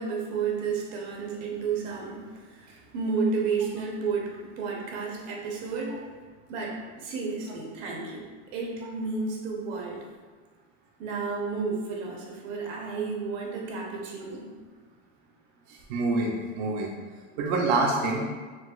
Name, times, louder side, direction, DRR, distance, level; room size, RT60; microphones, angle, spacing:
voice 1, 0.0-6.0 6.5-10.1 11.0-14.5, right 4 dB, 80° right, -1 dB, 0.8 m, -32 dB
voice 2, 15.7-16.9 17.4-18.3, right 2 dB, 45° right, -2 dB, 0.4 m, -26 dB
4.0 x 2.2 x 2.3 m, 1.4 s
supercardioid pair, 150°, 37 cm